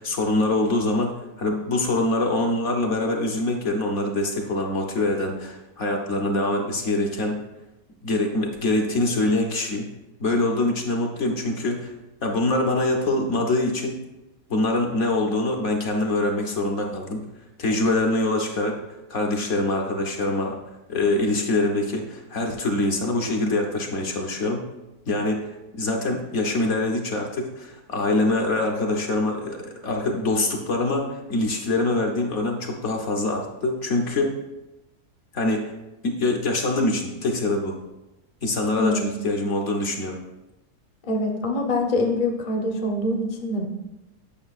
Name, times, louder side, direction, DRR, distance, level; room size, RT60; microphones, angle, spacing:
voice 1, 0.0-7.4 8.0-9.9 10.2-11.9 12.2-14.0 14.5-17.2 17.6-18.8 19.1-20.6 20.9-24.6 25.1-25.4 25.8-34.3 35.3-35.6 36.0-37.8 38.4-40.2, left 2 dB, 55° left, 1 dB, 1.0 m, -24 dB
voice 2, 38.8-39.1 41.1-43.7, left 1 dB, 35° left, 1 dB, 0.6 m, -24 dB
8.7 x 5.7 x 2.4 m, 0.95 s
omnidirectional pair, 1.6 m